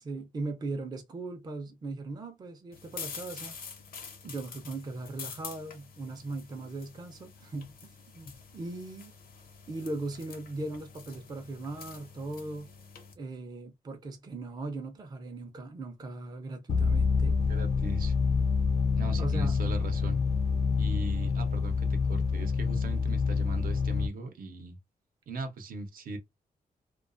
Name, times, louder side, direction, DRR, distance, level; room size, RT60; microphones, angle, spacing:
voice 1, 0.0-3.6 4.2-9.1 9.7-12.7 13.2-17.4 19.2-19.6, right 2 dB, 25° right, 0.4 m, -39 dB
sound 1, 2.7-13.1, left 6 dB, 75° left, 0.7 m, -47 dB
sound 2, 16.7-24.1, left 5 dB, 45° left, 0.4 m, -27 dB
voice 2, 17.5-18.1 19.0-20.2 20.8-24.8 25.3-26.2, right 3 dB, 75° right, 0.7 m, -38 dB
2.3 x 2.2 x 2.5 m
wide cardioid pair, 165°, 15 cm